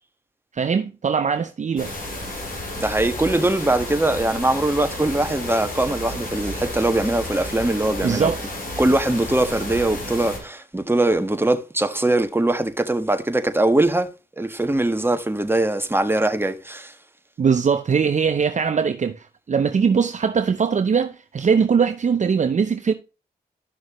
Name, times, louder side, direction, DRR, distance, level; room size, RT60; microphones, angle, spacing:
voice 1, 0.5-1.9 8.0-8.5 17.4-22.9, right 6 dB, 50° right, 0.6 m, -21 dB
sound 1, 1.8-10.4, left 1 dB, 60° left, 4.0 m, -32 dB
voice 2, 2.8-8.3 8.8-14.1 14.4-16.9, right 2 dB, 15° right, 1.5 m, -21 dB
12.5 x 6.3 x 3.0 m
supercardioid pair, 40°, 16 cm